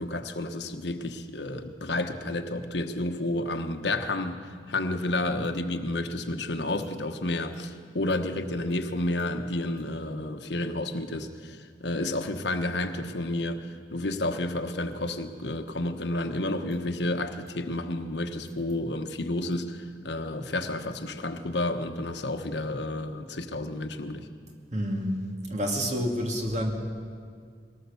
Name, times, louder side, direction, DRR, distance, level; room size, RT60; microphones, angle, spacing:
voice 1, 0.0-24.3, left 2 dB, 80° left, 7 dB, 1.3 m, -31 dB
voice 2, 24.7-25.2 25.5-26.7, equal, 40° right, 2 dB, 2.5 m, -28 dB
22.5 x 18.0 x 7.1 m, 2.1 s
head